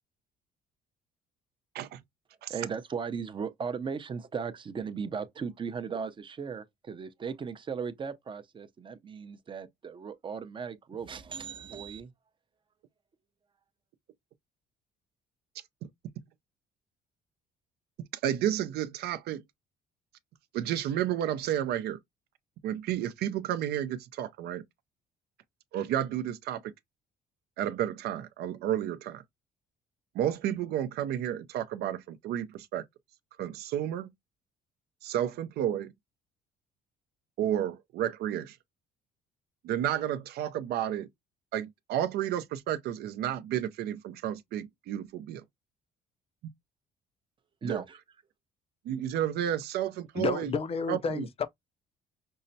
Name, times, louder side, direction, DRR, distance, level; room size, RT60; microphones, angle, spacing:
voice 1, 2.5-12.1 47.6-48.0, right 6 dB, 30° right, 0.6 m, -37 dB
voice 2, 18.2-19.4 20.5-22.0 22.6-24.6 25.7-26.7 27.6-29.2 30.1-32.8 33.4-34.1 35.0-35.9 37.4-38.6 39.6-41.1 41.5-45.4 46.4-46.5 47.6-47.8 48.9-50.5 50.9-51.3, right 11 dB, 75° right, 0.5 m, -31 dB
voice 3, 50.1-51.5, left 5 dB, 35° left, 0.4 m, -31 dB
5.5 x 2.0 x 2.7 m
cardioid pair, 110°, 17 cm